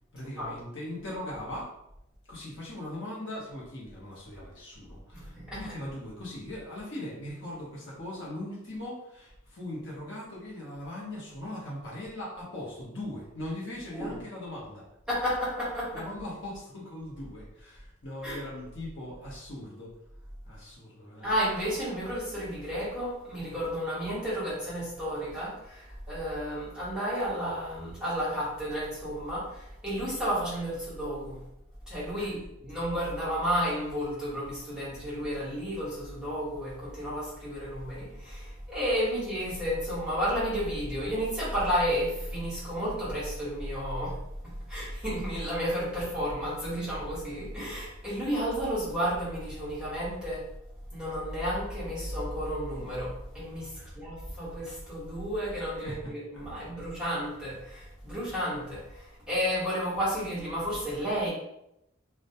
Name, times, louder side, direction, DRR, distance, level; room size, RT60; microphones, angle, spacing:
voice 1, 0.1-1.7 2.3-14.8 15.9-19.9 20.5-21.3 32.2-32.3 53.8-54.0 55.8-56.4, left 1 dB, 60° left, -5 dB, 0.8 m, -40 dB
voice 2, 5.1-5.6 13.9-14.1 15.1-16.0 18.2-18.4 21.2-31.4 31.9-44.2 44.4-50.4 50.9-61.3, equal, 5° right, -10 dB, 1.0 m, -32 dB
2.2 x 2.1 x 2.7 m, 0.82 s
head